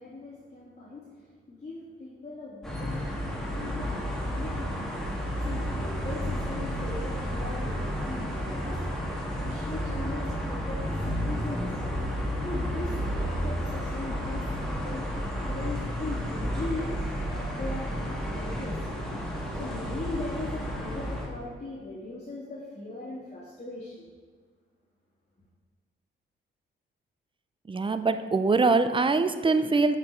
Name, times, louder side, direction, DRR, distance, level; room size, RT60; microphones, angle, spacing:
voice 1, 0.0-4.8 5.4-8.8 9.3-11.8 12.4-17.0 17.3-18.8 19.5-24.0, left 2 dB, 35° left, -7 dB, 1.8 m, -39 dB
sound 1, 2.6-21.3, equal, ahead, 1.7 m, -31 dB
voice 2, 27.7-30.0, right 3 dB, 25° right, 10 dB, 0.4 m, -23 dB
7.5 x 4.8 x 4.5 m, 1.5 s
cardioid pair, 70°, 21 cm